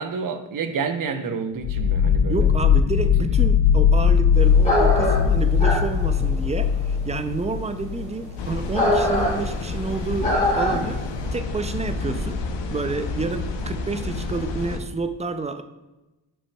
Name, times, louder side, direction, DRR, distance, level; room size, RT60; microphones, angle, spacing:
voice 1, 0.0-2.5, right 5 dB, 45° right, 8 dB, 0.7 m, -29 dB
sound 1, 1.6-8.4, left 7 dB, 50° left, 0.5 m, -19 dB
voice 2, 2.3-10.3 10.6-11.0 11.3-12.4 12.7-15.6, right 3 dB, 15° right, 9 dB, 0.3 m, -29 dB
sound 2, 4.6-11.1, left 1 dB, 15° left, 1.9 m, -23 dB
sound 3, 8.4-14.8, left 3 dB, 70° left, 0.8 m, -29 dB
8.7 x 5.3 x 2.2 m, 1.1 s
cardioid pair, 85°, 45 cm